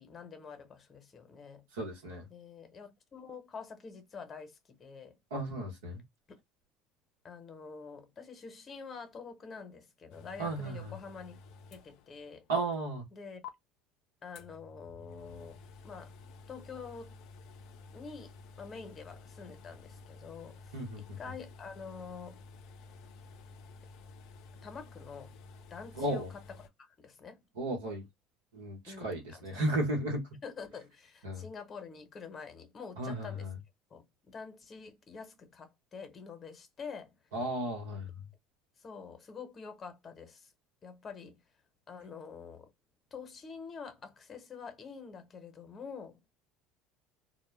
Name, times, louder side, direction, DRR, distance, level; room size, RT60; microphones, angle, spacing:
voice 1, 0.0-1.7 2.3-5.2 7.2-11.4 11.7-12.5 13.1-13.4 14.2-16.2 16.5-17.3 17.9-22.4 24.6-25.3 25.7-26.3 26.8-27.5 28.9-29.6 30.4-33.5 33.9-37.2 38.8-40.5 40.8-41.4 41.9-42.7 43.1-46.2, left 5 dB, 35° left, 0.8 m, -47 dB
voice 2, 1.7-2.3 5.3-6.0 10.4-10.9 12.5-13.0 20.7-21.2 26.0-26.3 27.6-28.1 28.5-30.3 31.2-31.4 33.0-33.5 37.3-38.1, right 1 dB, 85° right, 0.8 m, -34 dB
sound 1, 10.1-12.4 12.7-12.8 13.4-13.5 14.3-26.7, left 4 dB, 65° left, 0.4 m, -52 dB
2.1 x 2.1 x 3.2 m
hypercardioid pair, 75°, 0 cm